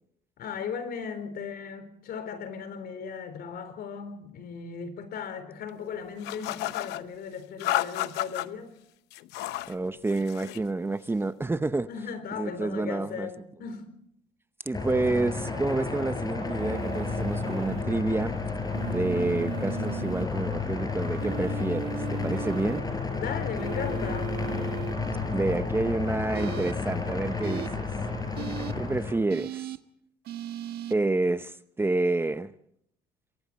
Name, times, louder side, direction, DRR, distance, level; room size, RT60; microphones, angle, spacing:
voice 1, 0.4-8.8 11.9-13.9 19.1-19.4 23.1-24.4 28.4-28.8, left 6 dB, 65° left, 4.0 m, -37 dB
sound 1, 6.2-7.0 7.6-8.5 9.1-9.7 10.1-10.7, left 15 dB, 90° left, 0.9 m, -31 dB
voice 2, 9.7-11.9 12.3-13.3 14.7-18.4 18.9-22.8 25.3-27.9 28.8-29.7 30.9-32.5, right 2 dB, 15° right, 0.8 m, -28 dB
sound 2, 14.7-29.1, left 4 dB, 20° left, 6.0 m, -32 dB
sound 3, 16.6-17.8 18.7-20.3 21.2-22.8 23.6-24.9 26.3-26.7 27.4-27.7 28.4-28.7 29.3-29.8 30.3-30.9, right 10 dB, 70° right, 1.5 m, -37 dB
27.5 x 23.0 x 4.3 m
cardioid pair, 110°, 17 cm